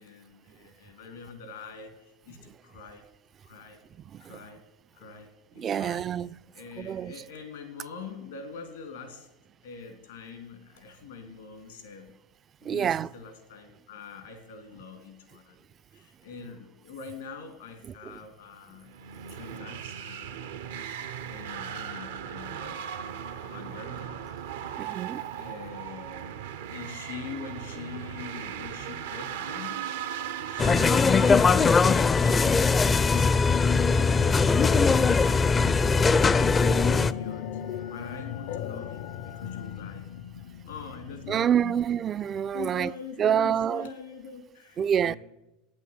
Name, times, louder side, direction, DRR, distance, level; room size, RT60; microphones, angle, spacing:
voice 1, 0.0-3.0 3.4-3.8 4.2-4.7 4.9-6.1 6.5-9.3 9.6-12.1 12.6-15.6 15.9-18.9 19.3-20.7 21.3-22.8 23.3-24.3 25.3-29.8 30.5-35.1 35.5-37.6 37.9-40.2 40.7-42.1 42.5-45.2, left 5 dB, 85° left, 2.8 m, -44 dB
voice 2, 4.0-4.4 5.6-6.4 6.8-7.1 12.6-13.1 17.8-18.2 24.8-25.2 41.3-42.9 43.2-43.9 44.8-45.1, right 9 dB, 35° right, 0.4 m, -27 dB
sound 1, 18.8-31.7, right 9 dB, 80° right, 0.8 m, -38 dB
sound 2, 30.6-37.1, left 4 dB, 25° left, 0.4 m, -21 dB
sound 3, 34.2-41.5, left 9 dB, 65° left, 0.6 m, -38 dB
12.0 x 9.5 x 8.8 m
hypercardioid pair, 90°, 0 cm